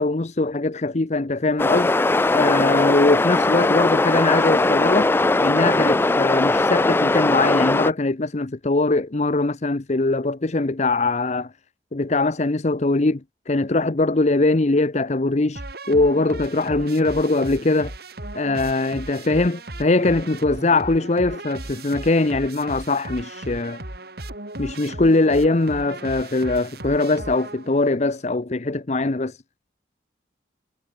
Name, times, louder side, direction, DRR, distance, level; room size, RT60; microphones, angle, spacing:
voice 1, 0.0-1.9 2.3-5.1 5.4-11.5 11.9-13.2 13.5-15.6 15.9-17.9 18.3-23.8 24.6-29.4, left 2 dB, 40° left, 0.8 m, -21 dB
sound 1, 1.6-7.9, left 2 dB, 15° left, 0.3 m, -19 dB
sound 2, 15.6-28.0, right 2 dB, 60° right, 4.4 m, -36 dB
head